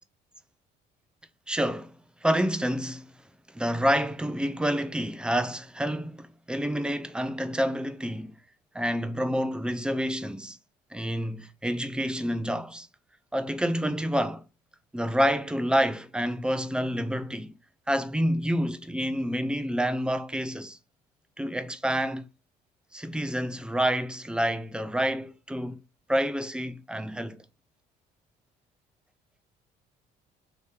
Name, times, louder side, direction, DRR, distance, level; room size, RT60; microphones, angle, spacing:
voice 1, 1.5-1.9 2.2-3.1 3.5-8.4 8.7-10.6 10.9-12.9 13.3-14.4 14.9-17.5 17.9-20.8 21.4-22.3 22.9-25.8 26.1-27.4, equal, 5° right, 0.4 m, -28 dB
3.2 x 2.8 x 3.3 m
cardioid pair, 110°, 17 cm